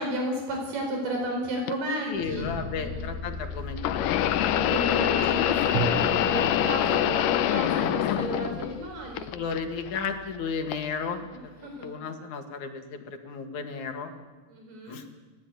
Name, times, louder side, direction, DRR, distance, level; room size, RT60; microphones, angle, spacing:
voice 1, 0.0-2.5 2.8-3.0 4.5-9.3 11.3-12.1 14.5-15.0, right 1 dB, 80° right, 1 dB, 6.3 m, -33 dB
sound 1, 1.7-1.8 3.8-8.8 9.2-10.0 10.7-10.9 11.8-11.9, left 12 dB, 85° left, 2.5 m, -25 dB
voice 2, 2.0-4.4 5.1-5.2 5.4-5.5 7.8-8.2 9.3-11.3 11.6-14.1 14.9-15.0, left 5 dB, 65° left, 5 dB, 3.3 m, -34 dB
sound 2, 2.1-11.2, left 3 dB, 10° right, 4.0 m, -40 dB
Drum, 5.7-8.1, right 6 dB, 60° right, 2.7 m, -35 dB
29.5 x 13.0 x 9.5 m, 1.3 s
omnidirectional pair, 3.7 m